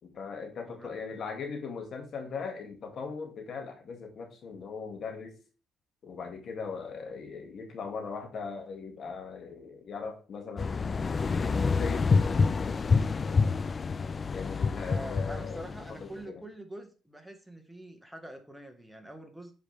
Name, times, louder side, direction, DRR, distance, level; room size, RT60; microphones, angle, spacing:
voice 1, 0.0-5.4 6.0-11.0 11.4-13.7 14.3-16.4, left 5 dB, 60° left, 4 dB, 2.2 m, -40 dB
voice 2, 0.6-1.2 14.9-19.5, right 1 dB, ahead, 5 dB, 1.6 m, -45 dB
sound 1, 10.6-16.0, left 4 dB, 35° left, 0.4 m, -27 dB
8.5 x 5.0 x 3.5 m, 0.35 s
cardioid pair, 90°, 0 cm